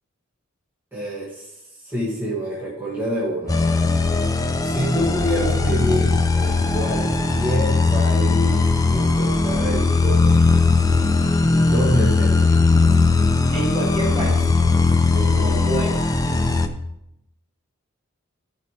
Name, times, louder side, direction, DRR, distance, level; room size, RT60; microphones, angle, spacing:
voice 1, 0.9-3.9 4.6-10.7 11.6-12.6 15.1-15.5, equal, 10° right, -8 dB, 2.3 m, -27 dB
sound 1, 3.5-16.7, left 3 dB, 15° left, 0.5 m, -19 dB
voice 2, 13.5-14.5 15.2-16.1, equal, 30° right, -4 dB, 2.8 m, -27 dB
13.5 x 5.2 x 3.4 m, 0.84 s
head